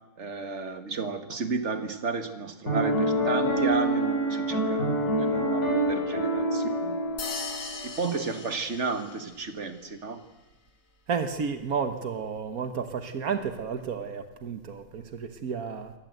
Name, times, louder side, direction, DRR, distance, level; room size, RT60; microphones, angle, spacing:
voice 1, 0.2-7.0 7.8-10.2, right 4 dB, 55° right, 9 dB, 2.1 m, -32 dB
Piano, 2.7-8.0, right 1 dB, 90° left, 7.0 m, -26 dB
sound 1, 7.2-9.5, left 4 dB, 50° left, 2.0 m, -39 dB
voice 2, 11.1-15.9, right 6 dB, 85° right, 9 dB, 1.8 m, -32 dB
24.0 x 18.5 x 8.0 m, 1.1 s
omnidirectional pair, 1.5 m